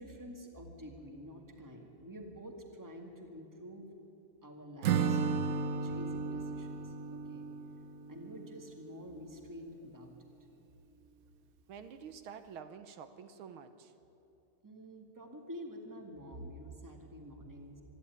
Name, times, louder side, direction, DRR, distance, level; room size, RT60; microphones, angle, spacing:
voice 1, 0.0-3.9 4.4-7.5 8.1-10.1 14.6-17.8, equal, 10° right, 3 dB, 1.9 m, -48 dB
Acoustic guitar / Strum, 4.8-8.7, right 5 dB, 65° right, 0.9 m, -34 dB
voice 2, 11.7-13.9, right 7 dB, 80° right, 10 dB, 1.8 m, -48 dB
25.5 x 11.0 x 9.5 m, 2.9 s
omnidirectional pair, 2.3 m